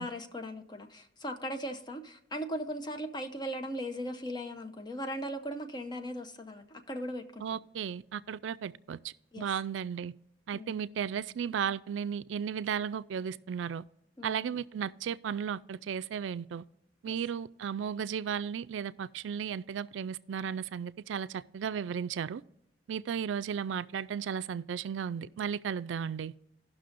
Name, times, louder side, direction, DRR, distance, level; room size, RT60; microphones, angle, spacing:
voice 1, 0.0-7.6 9.3-9.5 10.5-10.8 14.2-14.5 17.1-17.2, equal, 25° left, 0.6 m, -38 dB
voice 2, 7.4-10.1 10.5-13.8 14.2-16.6 17.0-22.4 22.9-26.3, right 7 dB, 80° right, 0.3 m, -35 dB
17.0 x 6.0 x 2.5 m
head